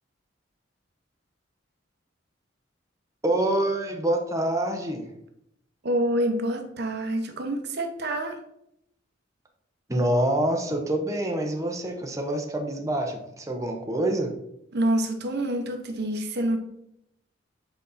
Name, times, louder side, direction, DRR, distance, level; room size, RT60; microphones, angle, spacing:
voice 1, 3.2-5.0 9.9-14.3, right 1 dB, 15° right, 2 dB, 0.9 m, -26 dB
voice 2, 5.8-8.4 14.7-16.6, right 1 dB, 60° right, 5 dB, 0.9 m, -27 dB
8.1 x 4.1 x 4.1 m, 0.76 s
head